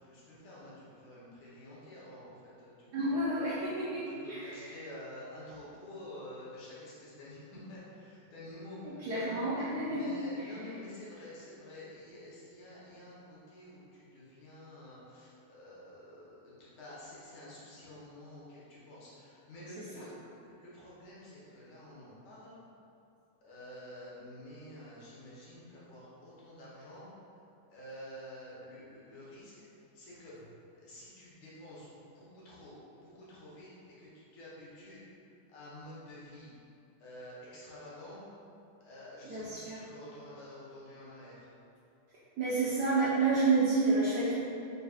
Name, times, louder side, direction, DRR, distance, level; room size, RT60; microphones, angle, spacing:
voice 1, 0.1-0.7 1.0-2.3 2.6-2.7 3.0-3.5 4.1-8.8 9.1-9.4 9.8-22.6 23.4-27.1 27.7-29.5 30.0-30.4 30.8-31.9 32.2-32.7 33.0-33.7 34.0-35.0 35.5-36.5 37.0-38.2 38.8-41.4, left 1 dB, 75° left, -8 dB, 1.9 m, -49 dB
voice 2, 2.9-4.8 8.8-10.8 19.8-20.0 39.2-39.8 42.4-44.3, right 3 dB, 70° right, -9 dB, 0.9 m, -30 dB
4.0 x 4.0 x 2.4 m, 2.6 s
omnidirectional pair, 2.4 m